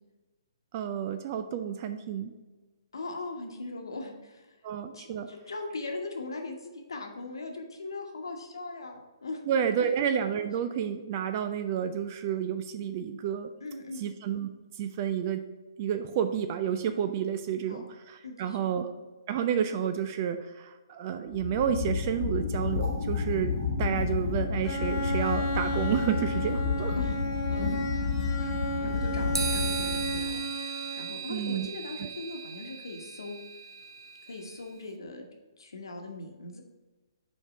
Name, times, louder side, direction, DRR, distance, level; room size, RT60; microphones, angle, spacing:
voice 1, 0.7-2.3 4.6-5.3 9.5-13.5 14.0-14.5 14.8-15.4 15.8-18.9 19.3-27.0 31.3-31.7 32.0-32.1, right 8 dB, 35° right, 9 dB, 0.4 m, -30 dB
voice 2, 2.9-4.6 4.9-9.9 10.4-10.5 13.6-14.0 17.7-17.9 18.2-18.9 23.4-23.6 27.0-27.7 28.8-30.4 30.7-33.4 34.2-35.3 35.6-36.6, left 2 dB, 70° left, 3 dB, 1.2 m, -40 dB
sound 1, 21.3-30.4, left 5 dB, 40° left, 1.1 m, -31 dB
Bowed string instrument, 24.6-31.3, right 1 dB, 15° left, 1.1 m, -34 dB
sound 2, 29.3-34.6, right 7 dB, 75° right, 0.7 m, -37 dB
5.3 x 4.6 x 4.8 m, 1.2 s
figure-of-eight pair, 130°, 2 cm